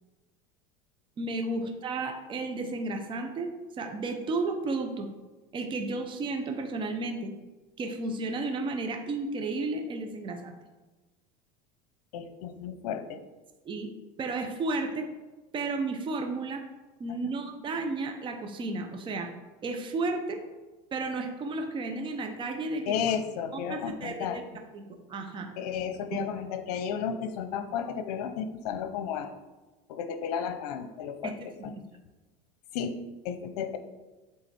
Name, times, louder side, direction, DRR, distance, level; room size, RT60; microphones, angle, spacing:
voice 1, 1.2-5.1 5.5-7.3 7.8-10.6 13.6-13.9 14.2-15.1 15.5-16.6 17.0-19.3 19.6-20.4 20.9-23.0 23.5-24.4 24.7-24.8 25.1-25.5 26.1-26.2 31.2-31.3 31.6-31.7, right 3 dB, 25° right, 4 dB, 0.7 m, -33 dB
voice 2, 12.1-13.2 17.2-17.4 22.9-24.4 25.6-29.3 29.9-31.3 31.6-31.7 32.7-33.0 33.2-33.8, left 7 dB, 80° left, 9 dB, 0.8 m, -33 dB
7.9 x 3.5 x 4.3 m, 1.2 s
supercardioid pair, 125°, 19 cm